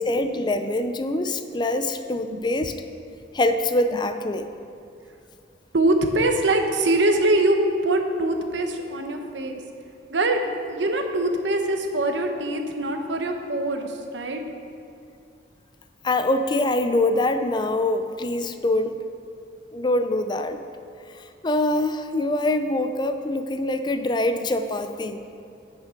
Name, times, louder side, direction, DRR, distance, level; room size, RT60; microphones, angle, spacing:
voice 1, 0.0-2.7 3.3-4.5 16.0-19.0 19.7-20.6 21.4-25.2, left 1 dB, 25° left, 8 dB, 0.4 m, -24 dB
voice 2, 5.7-9.6 10.1-14.4, right 2 dB, 70° right, 4 dB, 1.0 m, -23 dB
15.5 x 6.2 x 5.1 m, 2.5 s
head